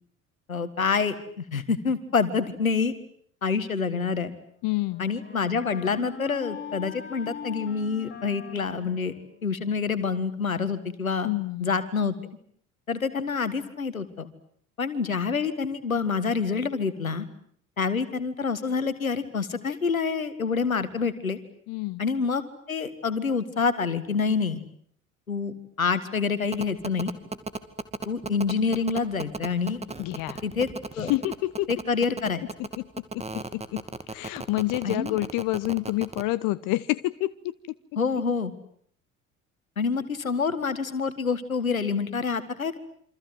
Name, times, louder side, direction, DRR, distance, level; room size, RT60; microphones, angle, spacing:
voice 1, 0.5-2.9 3.4-4.3 5.0-9.1 9.4-11.3 11.6-12.1 12.9-14.3 14.8-17.3 17.8-21.4 22.0-22.4 22.7-24.6 25.3-27.1 28.1-29.8 30.4-30.7 31.0-31.1 31.7-32.4 34.8-35.2 38.0-38.5 39.8-42.8, left 5 dB, 85° left, 13 dB, 1.8 m, -27 dB
Wind instrument woodwind instrument, 4.2-10.0, left 7 dB, 30° left, 5.7 m, -42 dB
voice 2, 4.6-5.0 11.2-11.7 21.7-22.0 30.0-30.4 31.0-31.7 32.8-37.5, left 19 dB, 55° left, 16 dB, 1.1 m, -28 dB
sound 1, 26.5-36.2, right 3 dB, 15° right, 2.4 m, -34 dB
28.0 x 25.5 x 7.9 m, 0.64 s
figure-of-eight pair, 60°, 40 cm